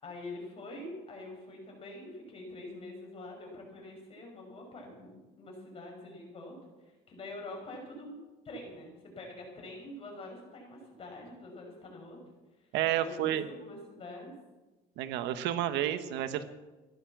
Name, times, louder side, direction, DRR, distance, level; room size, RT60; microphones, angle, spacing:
voice 1, 0.0-8.2 8.4-12.2 12.9-14.3, left 2 dB, 35° left, 1 dB, 5.9 m, -45 dB
voice 2, 12.7-13.5 15.0-16.4, right 11 dB, 80° right, 10 dB, 1.2 m, -30 dB
15.5 x 11.5 x 7.4 m, 1.1 s
cardioid pair, 145°, 18 cm